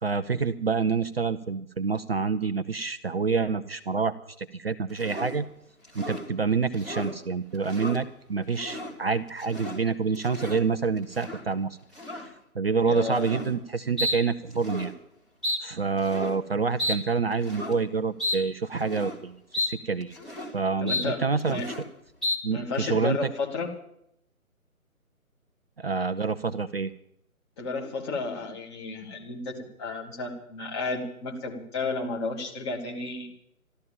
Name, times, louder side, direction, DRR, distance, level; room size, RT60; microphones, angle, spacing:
voice 1, 0.0-5.5 5.9-11.8 12.5-14.9 15.6-20.1 20.5-21.7 22.4-23.3 25.8-26.9, right 5 dB, 45° right, 10 dB, 0.7 m, -27 dB
sound 1, 5.0-5.4 5.8-6.3 6.7-7.1 7.5-8.0 8.5-8.9 9.3-9.8 10.1-10.6 11.1-11.4 11.9-12.3 13.1-13.5 14.0-14.2 14.5-14.9 15.4-15.6 16.0-16.4 16.8-17.0 17.4-17.7 18.2-18.4 18.8-19.2 19.5-19.7 20.0-20.5 20.9-21.1 21.4-21.9 22.2-22.4, left 1 dB, ahead, 1.0 m, -32 dB
voice 2, 12.8-13.5 20.8-21.7 22.5-23.7 27.6-29.5 29.8-33.3, left 3 dB, 20° left, 1 dB, 2.0 m, -32 dB
14.0 x 12.5 x 7.2 m, 0.74 s
figure-of-eight pair, 145°, 43 cm